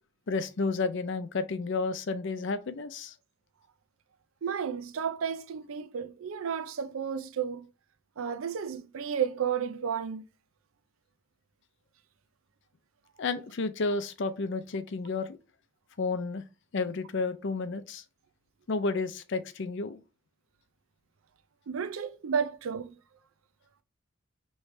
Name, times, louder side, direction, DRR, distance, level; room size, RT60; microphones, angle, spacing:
voice 1, 0.3-3.1 13.2-15.4 16.0-16.4 16.7-18.0 18.7-20.0, left 3 dB, 65° left, 0.5 m, -31 dB
voice 2, 4.4-7.7 8.2-10.2 21.7-22.9, right 7 dB, 85° right, 0.5 m, -32 dB
4.9 x 3.1 x 3.2 m
head